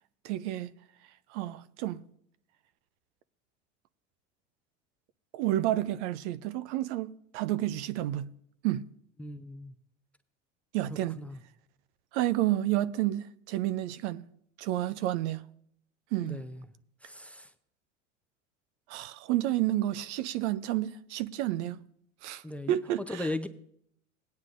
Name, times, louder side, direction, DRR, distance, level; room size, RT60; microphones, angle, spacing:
voice 1, 0.2-0.7 1.3-2.0 5.3-8.3 8.6-8.8 10.7-11.2 12.1-14.2 14.6-15.4 16.1-16.4 18.9-21.8 22.2-23.3, right 14 dB, 60° right, 0.6 m, -30 dB
voice 2, 9.2-9.7 11.2-11.4 16.2-16.6 17.0-17.5 22.4-22.8 23.1-23.5, left 2 dB, 5° left, 0.6 m, -37 dB
18.5 x 9.5 x 2.5 m
hypercardioid pair, 80°, 39 cm